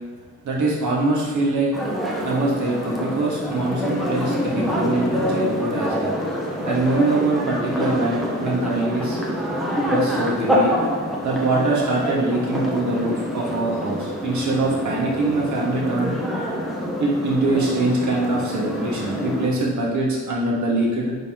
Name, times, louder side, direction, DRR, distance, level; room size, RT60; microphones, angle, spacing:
voice 1, 0.4-1.7 2.2-6.2 6.7-9.2 9.9-10.7 11.2-16.1 17.0-21.2, right 2 dB, 70° right, -3 dB, 1.8 m, -23 dB
sound 1, 1.7-19.5, equal, ahead, 1.0 m, -26 dB
9.6 x 4.2 x 3.8 m, 1.4 s
wide cardioid pair, 175°, 31 cm